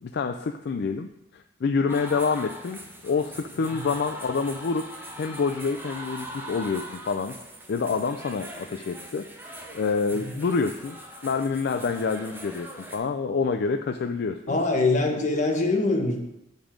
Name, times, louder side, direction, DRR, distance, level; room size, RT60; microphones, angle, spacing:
voice 1, 0.0-4.8 5.2-7.3 7.7-11.0 11.2-14.6, left 4 dB, 60° left, 6 dB, 0.4 m, -27 dB
sound 1, 1.9-13.0, right 1 dB, 10° right, 1.1 m, -41 dB
voice 2, 14.5-16.3, left 2 dB, 40° left, 2 dB, 1.2 m, -24 dB
7.4 x 5.3 x 5.0 m, 0.87 s
head